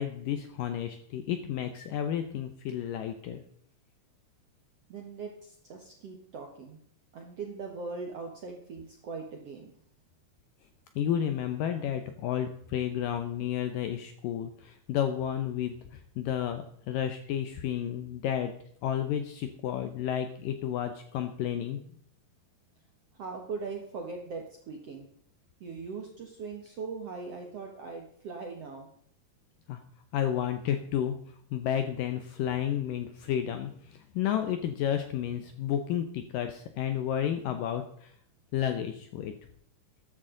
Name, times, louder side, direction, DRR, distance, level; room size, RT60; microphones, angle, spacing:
voice 1, 0.0-3.4 11.0-18.5 18.8-21.8 29.7-29.8 30.1-38.1 38.5-39.3, left 10 dB, 75° left, 8 dB, 2.0 m, -31 dB
voice 2, 4.9-6.8 7.1-9.7 23.1-25.1 25.6-28.9, right 4 dB, 65° right, 2 dB, 1.6 m, -40 dB
14.0 x 11.0 x 3.8 m, 0.66 s
omnidirectional pair, 4.7 m